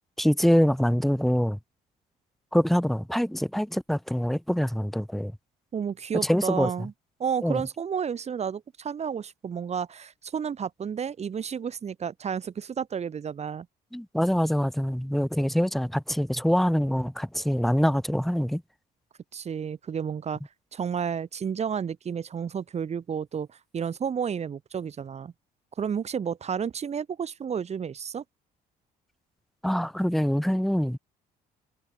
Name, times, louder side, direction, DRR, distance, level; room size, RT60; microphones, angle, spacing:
voice 1, 0.2-1.6 2.5-5.3 6.2-6.7 7.4-7.6 13.9-18.6 29.6-31.0, equal, ahead, 2.6 m, -24 dB
voice 2, 5.7-6.9 7.2-13.7 19.3-20.4 20.7-25.3 25.8-28.2, right 7 dB, 40° right, 4.3 m, -31 dB
cardioid pair, 110°, 17 cm